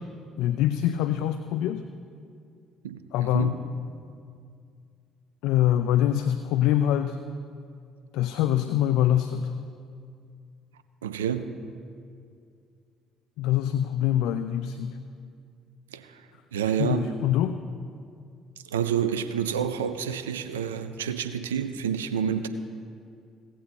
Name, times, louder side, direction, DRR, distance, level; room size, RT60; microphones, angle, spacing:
voice 1, 0.4-1.8 3.1-3.6 5.4-7.2 8.1-9.5 13.4-15.0 16.8-17.6, left 11 dB, 70° left, 10 dB, 0.4 m, -24 dB
voice 2, 2.8-3.6 11.0-11.5 15.9-16.2 16.5-17.1 18.7-22.5, right 8 dB, 85° right, 11 dB, 0.6 m, -29 dB
16.5 x 16.0 x 3.0 m, 2.3 s
hypercardioid pair, 55°, 0 cm